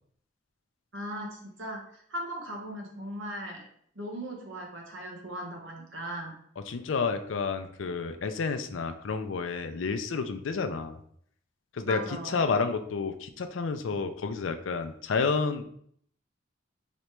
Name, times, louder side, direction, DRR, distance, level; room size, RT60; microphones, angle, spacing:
voice 1, 0.9-3.6 3.9-6.3 11.9-12.4, equal, 75° right, 1 dB, 1.1 m, -38 dB
voice 2, 6.7-11.0 11.7-15.6, left 4 dB, 80° left, 8 dB, 0.5 m, -30 dB
3.2 x 3.0 x 4.5 m, 0.65 s
head